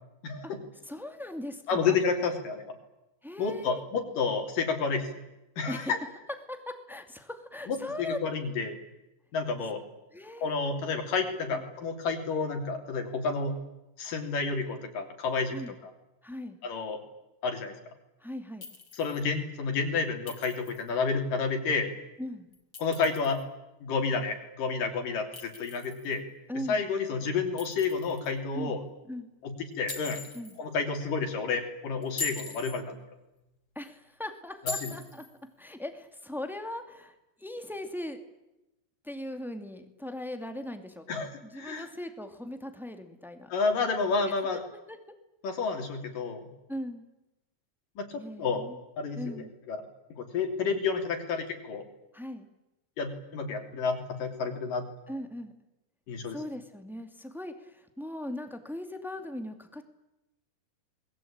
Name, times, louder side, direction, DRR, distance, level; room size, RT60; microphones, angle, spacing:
voice 1, 0.2-0.6 1.7-2.7 3.4-5.2 5.6-6.0 7.7-8.8 9.3-9.8 10.4-13.5 14.0-15.6 16.6-17.0 17.4-17.8 19.0-21.9 22.8-23.4 23.8-26.2 26.7-28.8 29.4-30.2 30.6-33.0 34.7-34.9 41.1-41.9 43.5-44.6 45.4-46.4 48.0-48.6 49.0-49.3 49.7-49.8 50.1-51.8 53.0-54.9 56.1-56.4, left 4 dB, 65° left, 4 dB, 4.7 m, -30 dB
voice 2, 0.8-2.0 3.2-3.8 5.6-5.9 6.5-8.2 10.1-10.5 11.3-11.6 15.5-15.7 16.2-16.6 18.2-18.7 22.2-22.5 26.5-26.8 28.5-28.7 29.1-29.3 30.3-30.6 33.7-35.2 35.6-38.2 39.0-43.5 44.2-44.3 44.9-45.0 46.7-47.0 48.2-48.8 49.1-49.5 52.1-52.5 55.1-55.5 56.3-59.8, left 1 dB, ahead, 6 dB, 1.5 m, -39 dB
Chink clink, 18.6-19.2 20.3-20.9 22.5-23.4 25.3-26.2 27.6-28.3 29.9-30.6 32.0-32.8 34.7-35.3, left 4 dB, 25° left, 3.4 m, -40 dB
28.0 x 21.5 x 8.9 m, 0.96 s
omnidirectional pair, 4.1 m